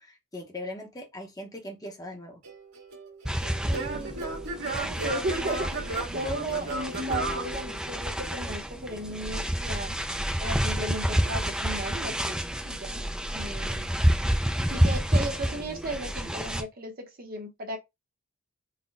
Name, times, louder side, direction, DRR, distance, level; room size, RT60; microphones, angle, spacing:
voice 1, 0.0-2.4, left 1 dB, 15° left, 0.7 m, -40 dB
Singing / Plucked string instrument, 2.4-8.3, right 2 dB, 75° right, 1.7 m, -35 dB
sound 1, 3.2-16.6, equal, 5° right, 0.3 m, -29 dB
voice 2, 3.6-4.2 4.6-10.0 10.4-13.9 14.7-17.8, right 1 dB, 40° right, 0.8 m, -35 dB
4.0 x 2.1 x 4.0 m
head